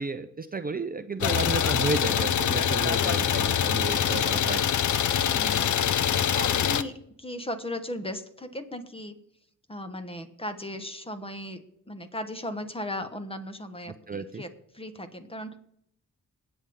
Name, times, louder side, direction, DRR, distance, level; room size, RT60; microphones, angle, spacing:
voice 1, 0.0-4.7 14.1-14.4, right 4 dB, 30° right, 10 dB, 0.6 m, -32 dB
Idling, 1.2-6.8, left 9 dB, 70° left, 0.7 m, -24 dB
voice 2, 5.3-5.8 6.1-9.1 9.7-15.6, left 1 dB, 20° left, 9 dB, 1.3 m, -37 dB
20.5 x 8.0 x 3.8 m, 0.71 s
cardioid pair, 80°, 31 cm